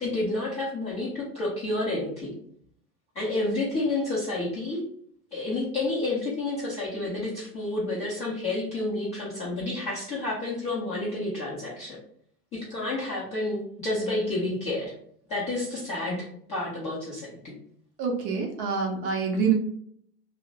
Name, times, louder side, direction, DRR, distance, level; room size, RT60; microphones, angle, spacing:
voice 1, 0.0-2.3 3.1-4.8 5.3-12.0 12.5-14.9 15.3-17.5, left 2 dB, 15° left, -9 dB, 0.3 m, -30 dB
voice 2, 18.0-19.5, right 6 dB, 35° right, 2 dB, 0.5 m, -26 dB
2.7 x 2.0 x 2.6 m, 0.66 s
figure-of-eight pair, 90°, 49 cm